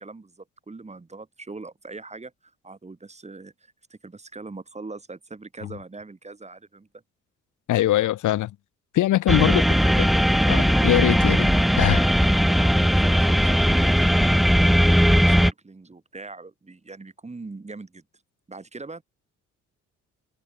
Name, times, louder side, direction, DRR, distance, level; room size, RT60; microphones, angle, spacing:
voice 1, 0.0-6.9 9.3-10.6 12.6-18.0 18.5-19.0, right 3 dB, 20° right, 5.5 m, -41 dB
voice 2, 7.7-8.5 8.9-9.6 10.0-10.1 10.5-12.1, left 14 dB, 80° left, 1.7 m, -22 dB
sound 1, 9.3-15.5, equal, ahead, 0.8 m, -18 dB
cardioid pair, 90°, 30 cm